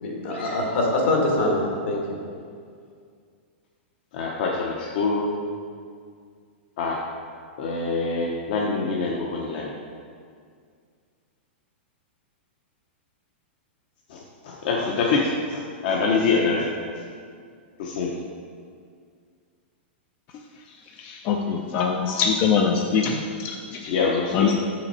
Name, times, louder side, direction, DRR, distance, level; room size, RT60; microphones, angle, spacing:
voice 1, 0.0-2.1, left 2 dB, 65° left, -1 dB, 1.8 m, -24 dB
voice 2, 4.1-5.3 6.8-7.0 7.6-9.7 14.1-16.6 17.8-18.1 23.9-24.3, left 4 dB, 45° left, -2 dB, 0.7 m, -25 dB
voice 3, 21.0-23.9 24.3-24.6, left 6 dB, 25° left, 2 dB, 0.4 m, -23 dB
6.9 x 5.7 x 4.2 m, 2.1 s
supercardioid pair, 170°, 6 cm